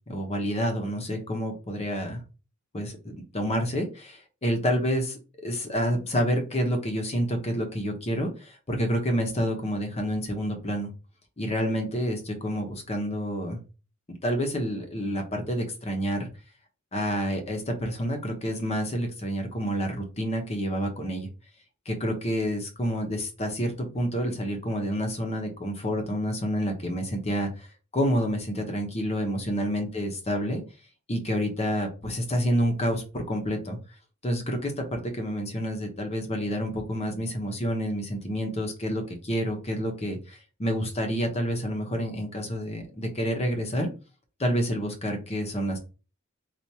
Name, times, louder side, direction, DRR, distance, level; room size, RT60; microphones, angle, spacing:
voice 1, 0.1-2.2 2.7-10.9 11.4-13.6 14.2-16.3 16.9-21.3 21.9-27.7 27.9-30.6 31.1-33.8 34.2-43.9 44.4-45.8, equal, 30° left, 4 dB, 0.9 m, -28 dB
4.6 x 2.5 x 2.8 m, 0.33 s
head